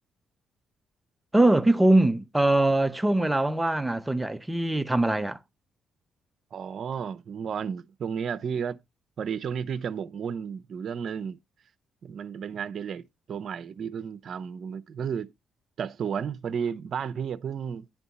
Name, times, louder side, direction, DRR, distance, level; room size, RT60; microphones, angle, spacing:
voice 1, 1.3-5.4, right 1 dB, 10° right, 0.6 m, -22 dB
voice 2, 6.5-8.8 9.2-11.4 12.0-13.0 13.3-15.3 15.8-17.9, right 7 dB, 60° right, 0.7 m, -32 dB
10.5 x 3.5 x 4.0 m
cardioid pair, 90°, 0 cm